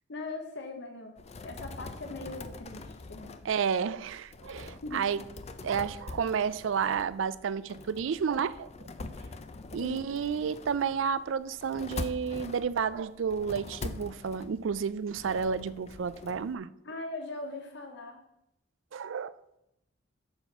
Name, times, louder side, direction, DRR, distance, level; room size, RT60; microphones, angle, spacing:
voice 1, 0.1-1.2 1.4-3.4 4.8-5.0 9.8-10.0 16.8-18.2, left 2 dB, 60° left, 0.9 m, -40 dB
sound 1, 1.2-16.5, left 3 dB, 35° left, 0.5 m, -44 dB
voice 2, 3.4-5.2 5.6-8.7 9.7-16.7 18.9-19.3, right 6 dB, 70° right, 0.4 m, -31 dB
6.9 x 4.2 x 6.7 m
head